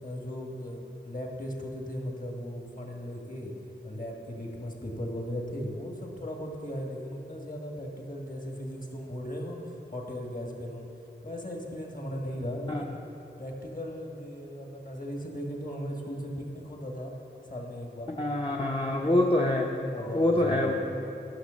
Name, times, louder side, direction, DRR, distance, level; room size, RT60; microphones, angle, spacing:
voice 1, 0.0-3.5 3.8-9.6 9.9-10.9 11.2-13.0 13.4-17.1 17.5-18.1 18.6-19.1 19.5-20.7, equal, 40° left, 0 dB, 1.8 m, -37 dB
voice 2, 18.1-19.7 20.0-20.7, left 1 dB, 25° left, -1 dB, 0.8 m, -26 dB
11.5 x 6.2 x 6.4 m, 2.9 s
wide cardioid pair, 45°, 20 cm